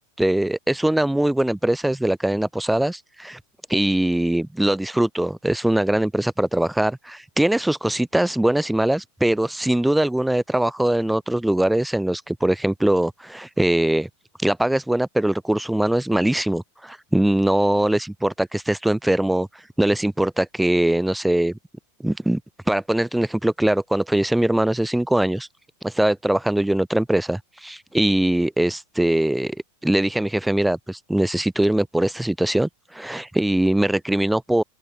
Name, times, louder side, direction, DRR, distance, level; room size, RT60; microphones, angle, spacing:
voice 1, 0.2-3.4 3.7-14.1 14.4-21.5 22.0-22.4 22.7-25.5 25.8-29.6 29.8-34.6, right 1 dB, 5° right, 1.1 m, -21 dB
open air
figure-of-eight pair, 90°, 0 cm